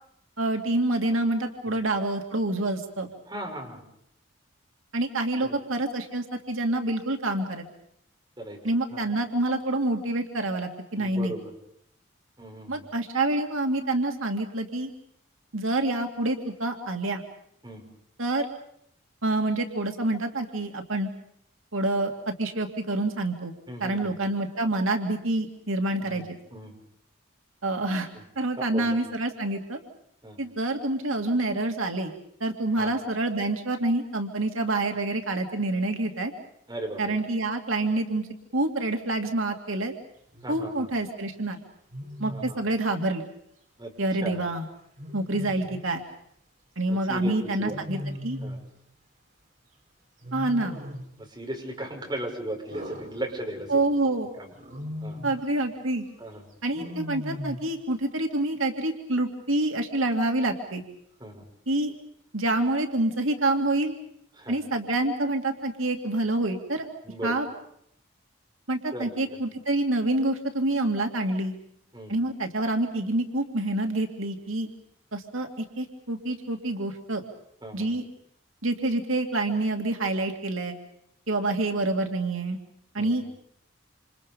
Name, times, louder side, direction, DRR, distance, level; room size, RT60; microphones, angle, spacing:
voice 1, 0.4-3.1 4.9-7.6 8.6-11.3 12.7-14.9 15.5-17.2 18.2-18.5 19.2-21.1 21.7-23.5 23.8-26.4 27.6-28.1 28.4-29.8 30.4-32.1 32.4-36.3 37.0-38.3 38.5-39.9 40.5-41.6 42.2-43.2 44.0-44.7 45.1-46.0 46.8-48.4 50.3-50.7 53.7-54.3 55.2-56.0 56.6-60.8 61.7-61.9 62.3-63.9 64.5-66.9 67.2-67.5 68.7-71.5 72.1-74.7 75.1-77.2 77.7-78.0 78.6-80.8 81.3-82.6 82.9-83.2, right 2 dB, 85° right, 4 dB, 2.5 m, -27 dB
voice 2, 3.3-3.8 5.4-5.5 8.4-8.6 8.9-9.1 11.0-11.5 12.4-12.9 17.6-17.8 23.7-24.1 26.0-26.7 28.6-29.0 30.2-30.4 32.8-32.9 36.7-37.2 40.4-40.9 42.3-42.6 43.8-43.9 44.2-44.4 46.9-47.3 47.6-48.0 48.4-48.6 51.2-53.9 54.4-54.5 55.0-55.2 56.2-56.4 61.2-61.4 64.4-64.6 67.0-67.4 68.9-69.1 71.9-72.1 77.6-78.0 83.0-83.1, right 1 dB, 20° right, 0 dB, 6.2 m, -37 dB
Wild animals, 40.3-40.7 41.9-42.6 45.0-45.9 47.6-48.7 50.2-51.2 52.7-53.8 54.6-55.4 56.7-57.7, equal, 40° right, 4.3 m, -38 dB
28.0 x 27.5 x 5.4 m, 0.72 s
head